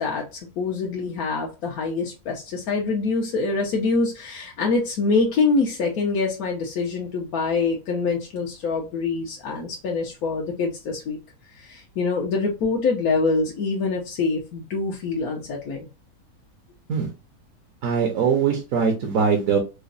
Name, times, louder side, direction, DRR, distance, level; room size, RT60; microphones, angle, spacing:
voice 1, 0.0-11.2 11.6-15.9, left 4 dB, 70° left, -1 dB, 1.3 m, -25 dB
voice 2, 17.8-19.6, right 6 dB, 60° right, 2 dB, 1.2 m, -21 dB
4.9 x 2.2 x 2.6 m, 0.27 s
omnidirectional pair, 1.7 m